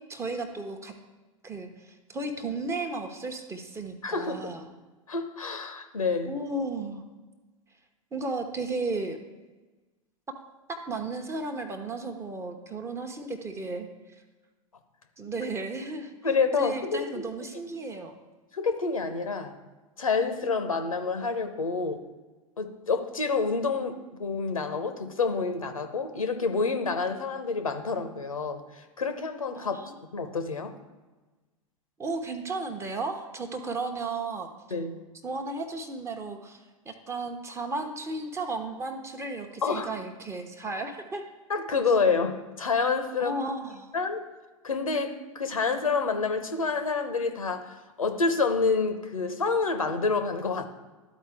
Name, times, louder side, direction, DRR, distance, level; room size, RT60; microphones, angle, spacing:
voice 1, 0.1-0.9 1.4-4.7 6.2-7.0 8.1-9.2 10.3-10.4 10.7-13.9 15.2-16.1 16.6-18.1 29.5-30.0 32.0-34.5 35.2-41.2 43.2-43.9, right 3 dB, 15° right, 5 dB, 0.8 m, -34 dB
voice 2, 4.0-4.5 5.1-6.3 16.2-17.1 18.5-19.5 20.0-22.0 22.6-29.8 30.1-30.7 34.7-35.0 39.6-39.9 41.5-43.4 43.9-44.3 44.6-50.7, left 4 dB, 80° left, 8 dB, 0.8 m, -28 dB
12.5 x 4.3 x 3.5 m, 1.2 s
figure-of-eight pair, 95°, 18 cm